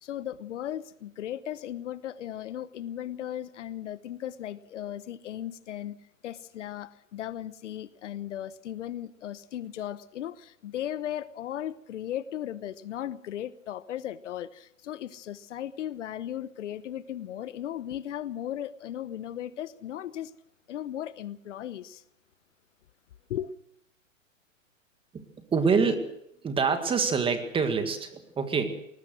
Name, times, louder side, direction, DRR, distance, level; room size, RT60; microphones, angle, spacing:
voice 1, 0.0-6.0 6.2-20.3 20.7-22.0 23.3-23.5, left 11 dB, 65° left, 1.1 m, -36 dB
voice 2, 25.5-26.2 26.4-28.7, right 5 dB, 15° right, 2.0 m, -26 dB
21.0 x 19.5 x 6.4 m
hypercardioid pair, 130°, 39 cm